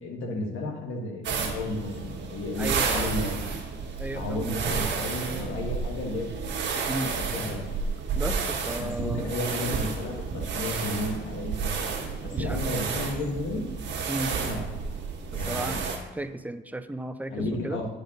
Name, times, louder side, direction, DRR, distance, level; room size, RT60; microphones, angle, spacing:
voice 1, 0.0-3.3 4.1-6.3 6.9-7.6 8.8-13.6 14.3-14.6 15.3-15.9 17.3-17.9, left 2 dB, 85° left, 1 dB, 1.6 m, -33 dB
sound 1, 1.2-16.0, right 5 dB, 70° right, 1.6 m, -31 dB
voice 2, 2.6-3.1 4.0-4.6 6.9-7.2 8.1-9.3 12.3-12.6 14.1-14.3 15.3-15.8 16.1-17.8, right 1 dB, 10° right, 10 dB, 0.5 m, -34 dB
10.5 x 5.3 x 3.9 m, 1.1 s
cardioid pair, 90°, 20 cm